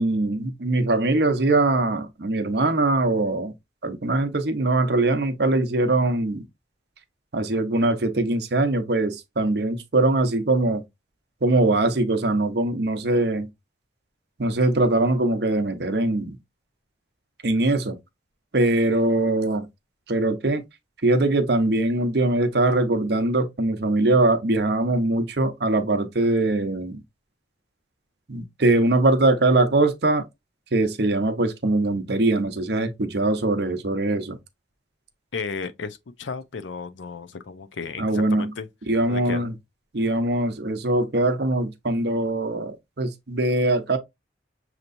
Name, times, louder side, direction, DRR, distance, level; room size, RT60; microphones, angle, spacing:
voice 1, 0.0-3.5 3.8-6.4 7.3-10.8 11.4-13.5 14.4-16.4 17.4-18.0 18.5-19.7 20.1-20.6 21.0-27.0 28.3-30.2 30.7-34.4 38.0-38.5 38.9-39.5 39.9-44.0, right 2 dB, 55° right, 0.8 m, -22 dB
voice 2, 35.3-38.7 39.1-39.5, left 5 dB, 75° left, 0.5 m, -34 dB
6.4 x 2.9 x 2.6 m
head